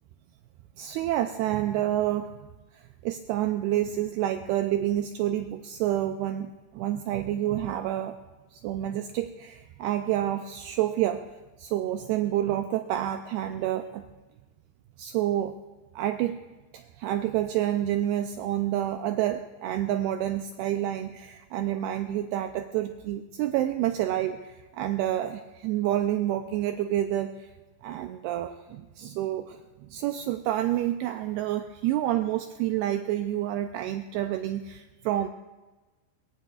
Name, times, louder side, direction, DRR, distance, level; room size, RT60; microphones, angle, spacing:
voice 1, 0.8-2.3 2.7-8.2 8.5-11.3 11.6-14.1 15.0-15.6 16.0-16.4 16.7-27.5 27.8-35.3, right 12 dB, 80° right, 7 dB, 2.4 m, -28 dB
23.0 x 22.0 x 2.4 m, 1.2 s
omnidirectional pair, 5.1 m